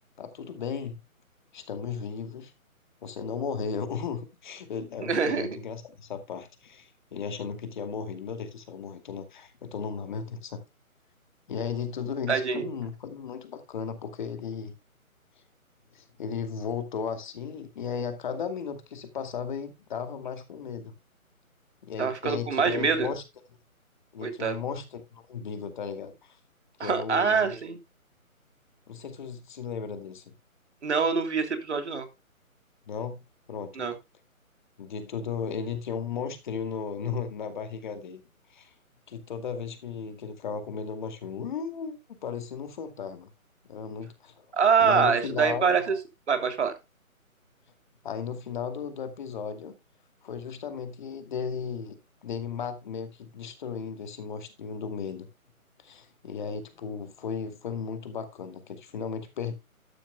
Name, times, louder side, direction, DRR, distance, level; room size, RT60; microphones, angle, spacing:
voice 1, 0.2-1.0 1.5-2.5 3.0-10.6 11.5-14.7 15.9-20.9 21.8-23.2 24.1-26.4 26.8-27.6 28.9-30.3 32.9-33.2 33.5-33.9 34.8-38.2 38.5-38.7 39.1-43.3 43.7-44.5 44.8-45.8 48.0-49.7 50.2-55.3 55.8-59.5, left 6 dB, 35° left, 2.3 m, -35 dB
voice 2, 5.0-5.5 12.3-12.7 22.0-23.1 24.2-24.6 26.8-27.8 30.8-32.1 33.8-33.9 44.5-45.9 46.3-46.7, right 6 dB, 55° right, 3.1 m, -25 dB
12.5 x 12.0 x 2.2 m
figure-of-eight pair, 150°, 42 cm